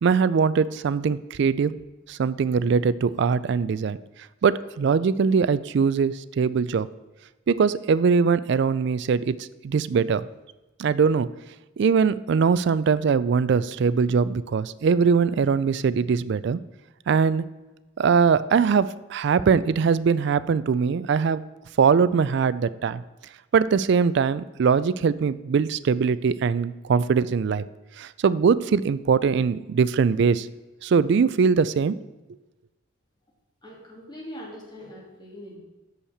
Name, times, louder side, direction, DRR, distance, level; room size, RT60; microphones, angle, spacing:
voice 1, 0.0-1.7 2.1-4.0 4.4-6.9 7.5-9.4 9.6-10.3 10.8-11.3 11.8-16.6 17.1-17.5 18.0-21.4 21.8-23.0 23.5-27.6 28.0-30.5 30.8-32.0, right 5 dB, 60° right, 17 dB, 0.3 m, -21 dB
voice 2, 33.6-35.6, equal, 20° left, -3 dB, 2.5 m, -41 dB
6.5 x 5.5 x 7.2 m, 1.1 s
head